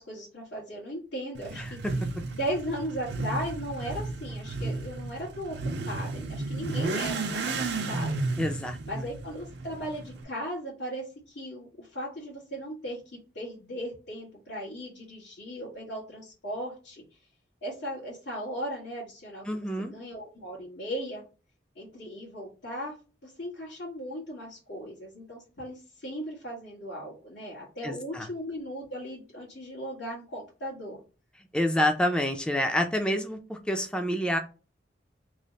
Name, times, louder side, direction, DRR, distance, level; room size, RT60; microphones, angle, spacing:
voice 1, 0.0-1.8 2.3-5.5 5.8-8.1 8.9-17.0 17.6-21.2 21.7-22.9 23.2-31.0, equal, 85° left, -7 dB, 1.5 m, -37 dB
Motorcycle / Accelerating revving vroom, 1.3-10.2, right 3 dB, 70° right, 0.5 m, -33 dB
voice 2, 1.6-2.1 8.4-9.1 19.5-19.9 27.8-28.3 31.5-34.4, left 1 dB, 5° left, 5 dB, 0.4 m, -28 dB
3.1 x 2.0 x 3.9 m, 0.34 s
head